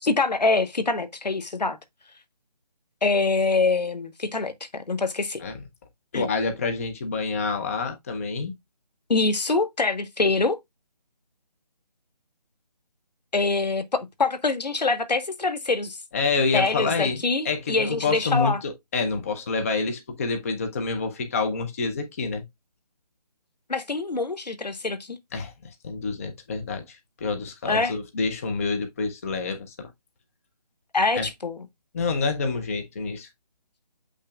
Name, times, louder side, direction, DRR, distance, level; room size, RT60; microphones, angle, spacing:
voice 1, 0.0-1.8 3.0-5.4 6.1-6.3 9.1-10.6 13.3-16.0 16.5-18.6 23.7-25.2 27.7-27.9 30.9-31.6, left 3 dB, 75° left, 1.4 m, -24 dB
voice 2, 6.1-8.5 16.1-22.4 25.3-25.5 25.8-29.9 31.2-31.3 31.9-33.3, left 4 dB, 20° left, 0.7 m, -27 dB
8.1 x 5.7 x 2.4 m
figure-of-eight pair, 160°, 21 cm